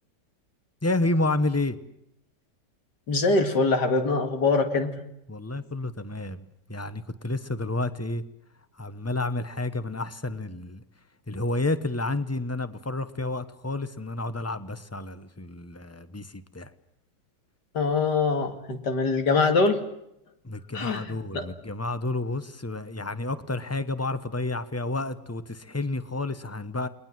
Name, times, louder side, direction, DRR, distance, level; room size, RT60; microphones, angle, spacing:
voice 1, 0.8-1.8 5.3-8.2 8.8-10.8 11.3-16.7 20.4-26.9, left 2 dB, 10° left, 0.7 m, -30 dB
voice 2, 3.1-4.9 17.7-19.8 20.7-21.5, left 3 dB, 70° left, 2.8 m, -23 dB
29.5 x 21.0 x 7.6 m
omnidirectional pair, 1.9 m